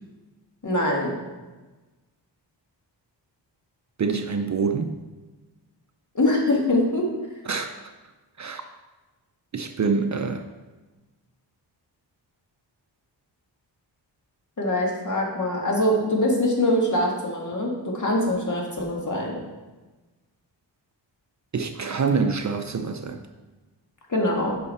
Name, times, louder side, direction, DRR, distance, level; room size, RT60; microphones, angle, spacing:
voice 1, 0.6-1.1 6.1-7.1 14.6-19.4 24.1-24.6, left 1 dB, 40° left, -1 dB, 1.9 m, -23 dB
voice 2, 4.0-5.0 7.5-7.7 8.4-8.6 9.5-10.4 21.5-23.2, right 5 dB, 40° right, 6 dB, 0.5 m, -26 dB
8.6 x 5.7 x 4.2 m, 1.2 s
wide cardioid pair, 100°, 44 cm